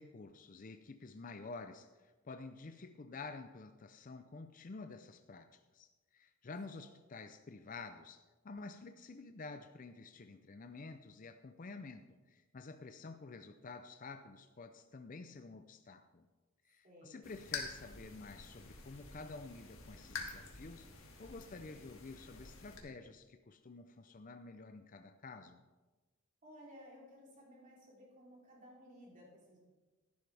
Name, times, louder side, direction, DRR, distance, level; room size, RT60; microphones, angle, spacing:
voice 1, 0.0-16.3 16.6-20.9 21.2-25.6, left 3 dB, 40° left, 8 dB, 0.5 m, -50 dB
voice 2, 16.8-17.3 26.4-29.6, equal, 40° right, -3 dB, 3.2 m, -57 dB
sound 1, 17.2-22.8, left 4 dB, 75° left, 1.9 m, -48 dB
13.0 x 11.5 x 3.4 m, 1.2 s
head